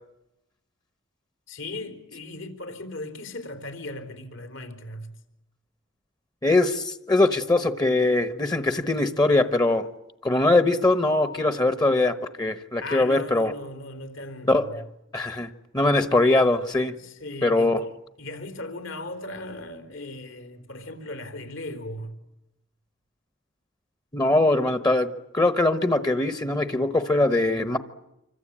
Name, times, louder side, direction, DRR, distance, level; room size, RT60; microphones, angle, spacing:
voice 1, 1.5-5.1 12.8-14.7 16.9-17.7 18.2-22.1, left 2 dB, 75° left, 4.0 m, -37 dB
voice 2, 6.4-9.9 10.2-13.5 14.5-14.8 15.1-16.9 17.4-17.8 24.1-27.8, left 2 dB, 20° left, 1.0 m, -22 dB
27.0 x 25.0 x 8.8 m
head